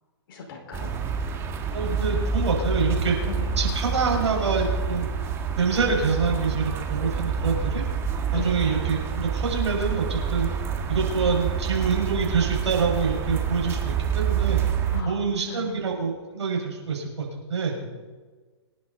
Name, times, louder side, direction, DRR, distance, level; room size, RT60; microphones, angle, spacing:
voice 1, 0.3-0.9 3.2-3.5 8.3-8.5 14.9-15.7 17.8-18.0, left 4 dB, 50° left, 0 dB, 5.3 m, -37 dB
sound 1, 0.7-15.0, right 6 dB, 15° right, 1.7 m, -27 dB
voice 2, 1.7-3.2 3.6-5.1 5.6-7.8 8.3-10.5 10.9-14.6 15.1-17.7, right 5 dB, 75° right, 0 dB, 6.1 m, -26 dB
26.5 x 11.0 x 4.3 m, 1.4 s
hypercardioid pair, 140°, 15 cm